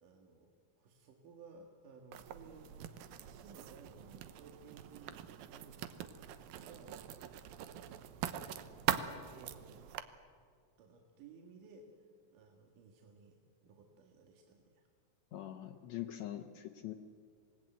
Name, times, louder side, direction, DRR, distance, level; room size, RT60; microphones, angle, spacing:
voice 1, 0.0-0.5 0.8-6.0 6.5-7.0 8.5-8.9 9.3-9.9 10.8-11.9 12.3-13.4 13.6-14.8, right 4 dB, 70° right, 3 dB, 3.1 m, -58 dB
Writing, 2.1-10.0, right 10 dB, 85° right, 2.7 m, -42 dB
voice 2, 15.3-16.9, left 13 dB, 75° left, 4 dB, 1.7 m, -43 dB
26.5 x 18.5 x 9.1 m, 2.2 s
omnidirectional pair, 4.1 m